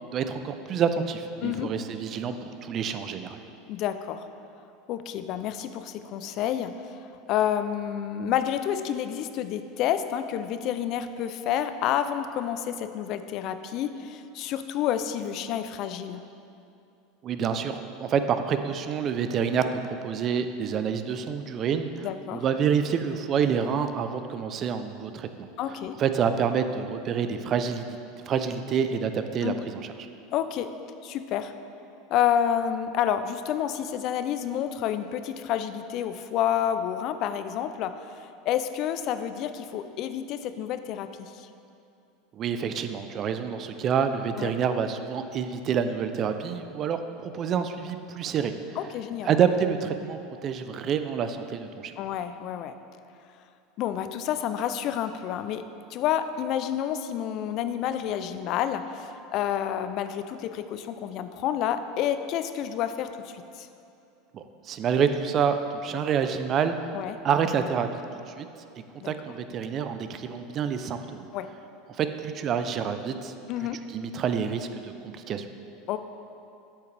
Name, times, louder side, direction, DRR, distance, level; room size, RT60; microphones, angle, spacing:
voice 1, 0.1-3.4 17.2-25.3 26.0-27.9 28.3-29.9 42.3-48.5 49.2-51.9 64.3-66.9 67.2-67.9 68.3-68.5 69.0-71.3 71.9-73.3 73.9-75.5, right 7 dB, 40° right, 9 dB, 0.4 m, -27 dB
voice 2, 3.7-4.3 4.9-16.2 22.0-22.4 25.6-26.0 29.4-29.6 30.3-30.7 31.0-31.5 32.1-41.5 44.4-44.5 48.8-49.3 52.0-52.7 53.8-63.7 66.9-67.2 69.0-69.1 71.3-71.5 73.5-73.8 75.9-76.0, left 10 dB, 55° left, 10 dB, 0.3 m, -29 dB
8.1 x 5.8 x 3.3 m, 2.6 s
supercardioid pair, 105°, 0 cm